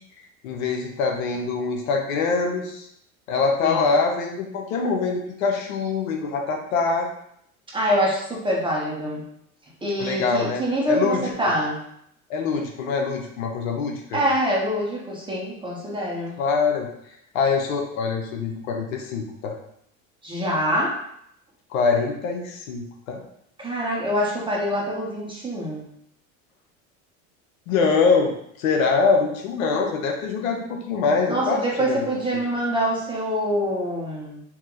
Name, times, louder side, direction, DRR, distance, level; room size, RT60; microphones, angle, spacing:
voice 1, 0.4-2.9 3.3-7.1 10.0-11.2 12.3-14.2 16.4-16.9 17.3-19.5 21.7-23.2 27.7-28.3 28.6-31.6 31.9-32.1, left 4 dB, 85° left, 2 dB, 0.8 m, -24 dB
voice 2, 7.7-9.2 9.8-11.8 14.1-16.4 20.2-20.9 23.6-25.8 31.3-34.4, equal, 10° right, -4 dB, 1.2 m, -25 dB
2.9 x 2.8 x 3.8 m, 0.72 s
hypercardioid pair, 90°, 40 cm